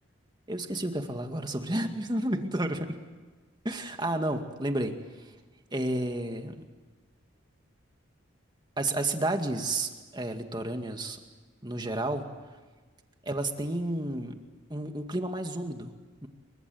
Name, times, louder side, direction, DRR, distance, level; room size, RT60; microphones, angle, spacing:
voice 1, 0.5-3.0 3.6-5.3 5.7-6.6 8.8-11.2 11.6-12.3 13.2-14.4 14.7-15.9 16.2-16.3, right 1 dB, 20° right, 5 dB, 2.1 m, -31 dB
28.0 x 24.5 x 8.0 m, 1.4 s
head